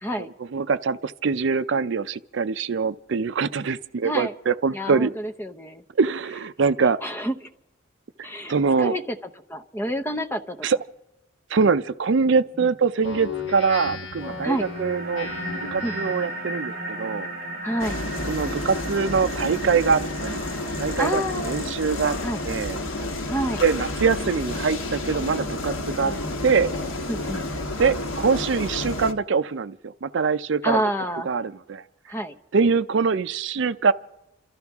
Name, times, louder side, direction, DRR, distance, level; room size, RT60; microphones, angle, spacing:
voice 1, 0.0-0.3 4.0-4.3 4.7-5.8 7.0-7.3 8.2-9.2 9.5-10.6 14.4-14.7 15.8-16.1 17.6-18.0 21.0-21.6 22.2-22.4 23.3-23.6 26.0-26.3 27.1-27.6 30.6-31.3 32.1-32.3, equal, 10° left, 0.7 m, -28 dB
voice 2, 0.5-5.1 6.0-7.0 8.5-8.9 10.6-10.8 11.5-15.3 15.7-17.3 18.3-20.4 20.8-22.2 22.4-22.8 23.6-26.1 26.4-26.7 27.8-30.8 31.3-31.8 32.5-33.9, right 5 dB, 65° right, 0.5 m, -23 dB
Speech synthesizer, 13.0-16.3, left 5 dB, 65° left, 1.5 m, -36 dB
sound 1, 14.2-23.2, right 1 dB, 45° right, 3.0 m, -36 dB
sound 2, 17.8-29.1, left 2 dB, 80° left, 1.3 m, -30 dB
29.0 x 14.0 x 3.5 m
head